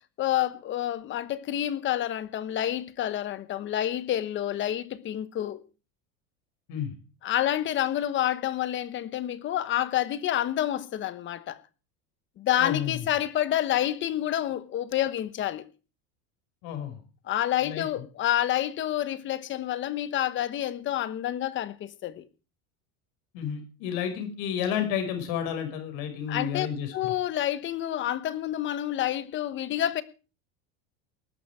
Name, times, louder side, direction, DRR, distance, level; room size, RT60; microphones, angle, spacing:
voice 1, 0.2-5.6 7.2-11.6 12.4-15.6 17.3-22.2 26.3-26.7 26.9-30.0, left 12 dB, 30° left, 1.1 m, -28 dB
voice 2, 12.6-13.0 16.6-17.0 17.6-17.9 23.3-26.9, left 9 dB, 55° left, 5.8 m, -31 dB
19.5 x 11.0 x 4.9 m
cardioid pair, 160°, 40 cm